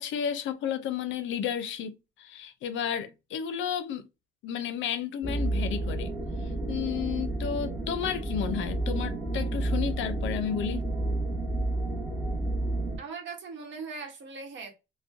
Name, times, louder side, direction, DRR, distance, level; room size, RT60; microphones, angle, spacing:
voice 1, 0.0-4.1 4.4-6.1 6.7-10.8, left 8 dB, 75° left, 0.5 m, -32 dB
sound 1, 5.2-13.0, right 2 dB, 10° right, 1.1 m, -30 dB
voice 2, 13.0-14.7, right 4 dB, 70° right, 0.9 m, -40 dB
2.5 x 2.1 x 2.3 m
cardioid pair, 90°, 20 cm